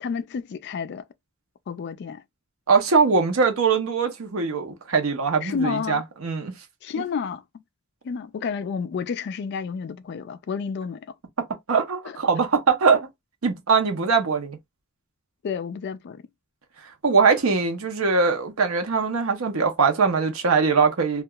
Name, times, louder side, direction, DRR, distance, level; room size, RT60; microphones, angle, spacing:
voice 1, 0.0-1.0 1.7-2.2 5.4-6.0 6.8-7.4 8.0-11.0 12.1-12.2 15.4-16.2, left 6 dB, 55° left, 0.3 m, -30 dB
voice 2, 2.7-6.5 11.7-13.1 13.4-14.6 17.0-21.2, right 5 dB, 85° right, 0.7 m, -21 dB
2.8 x 2.2 x 2.2 m
head